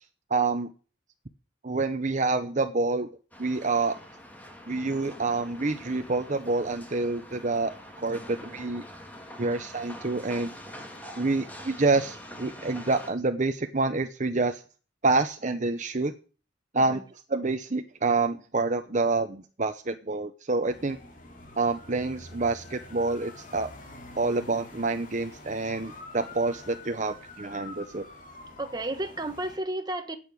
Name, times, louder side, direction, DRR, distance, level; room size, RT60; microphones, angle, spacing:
voice 1, 0.3-0.7 1.6-3.1 3.4-4.0 4.7-7.7 8.0-8.8 9.4-10.5 11.2-14.6 15.0-16.1 16.7-17.0 17.3-21.0 21.6-23.7 24.2-28.0, right 3 dB, 45° right, 0.9 m, -27 dB
sound 1, 3.3-13.1, equal, 10° left, 2.7 m, -45 dB
sound 2, 20.6-29.6, left 2 dB, 50° left, 3.0 m, -46 dB
voice 2, 28.6-30.2, right 1 dB, 25° right, 1.5 m, -33 dB
11.0 x 8.9 x 9.7 m
head